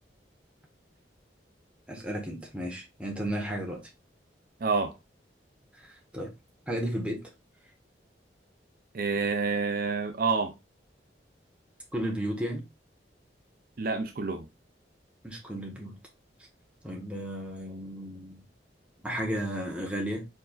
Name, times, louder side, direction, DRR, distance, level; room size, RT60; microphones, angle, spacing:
voice 1, 1.9-3.8 5.7-6.3 6.7-7.2 11.9-12.7 15.2-16.0 16.8-18.4 19.0-20.3, equal, 5° right, 1.3 m, -33 dB
voice 2, 4.6-4.9 8.9-10.5 13.8-14.5, right 4 dB, 50° right, 0.5 m, -28 dB
4.8 x 4.3 x 2.4 m
head